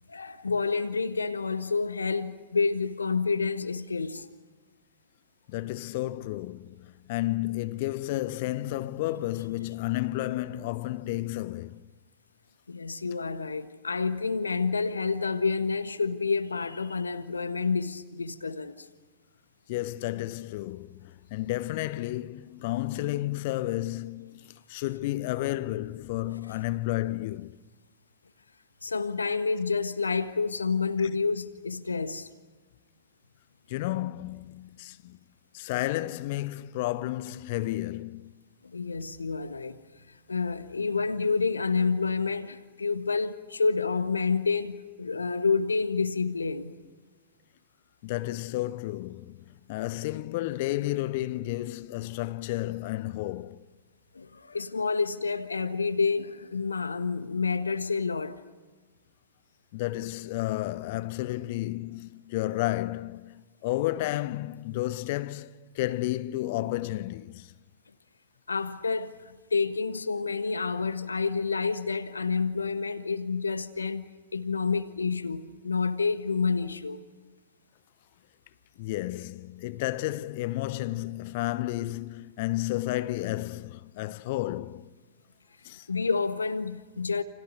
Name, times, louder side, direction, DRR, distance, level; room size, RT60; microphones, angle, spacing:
voice 1, 0.1-4.3 12.7-18.9 28.8-32.3 38.6-39.8 40.1-46.7 54.1-58.4 68.5-77.0 85.9-87.2, left 4 dB, 75° left, 1.5 m, -29 dB
voice 2, 5.5-11.8 19.7-27.6 33.7-35.2 35.5-38.3 48.0-49.4 49.7-53.6 59.7-67.5 78.8-84.9 85.6-85.9, left 16 dB, 45° left, 1.0 m, -32 dB
30.0 x 29.5 x 6.4 m
figure-of-eight pair, 100°, 0 cm